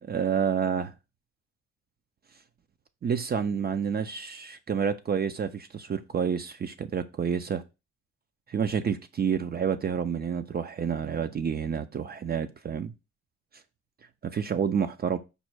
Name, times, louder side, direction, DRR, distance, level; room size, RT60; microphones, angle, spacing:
voice 1, 0.0-0.9 3.0-7.6 8.5-12.9 14.2-15.2, right 7 dB, 35° right, 0.4 m, -29 dB
5.2 x 2.1 x 4.5 m
cardioid pair, 90°, 30 cm